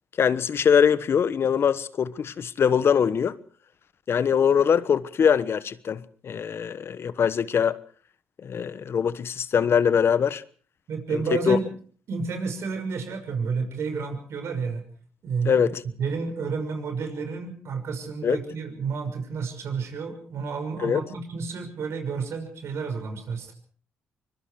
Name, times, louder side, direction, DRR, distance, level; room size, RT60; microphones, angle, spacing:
voice 1, 0.2-3.4 4.1-7.8 8.4-10.4 11.1-11.6 15.4-15.8 18.2-18.4 20.8-21.0, left 7 dB, 60° left, 1.2 m, -22 dB
voice 2, 10.9-11.6 12.1-14.8 15.2-15.7 16.0-23.5, right 5 dB, 70° right, 6.2 m, -30 dB
24.0 x 22.0 x 4.9 m
supercardioid pair, 60°, 5 cm